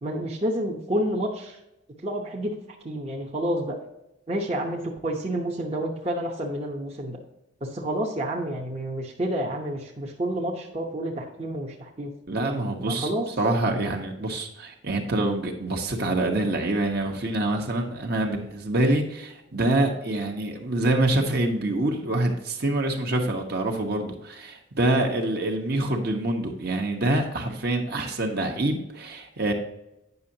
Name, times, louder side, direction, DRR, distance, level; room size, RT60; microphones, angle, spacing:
voice 1, 0.0-1.6 2.0-2.5 2.8-3.8 4.3-7.2 7.6-12.1 12.8-13.3, right 1 dB, 30° right, -2 dB, 0.9 m, -29 dB
voice 2, 12.3-13.1 13.4-29.5, right 2 dB, 55° right, 2 dB, 1.2 m, -26 dB
9.3 x 6.3 x 2.8 m, 0.88 s
head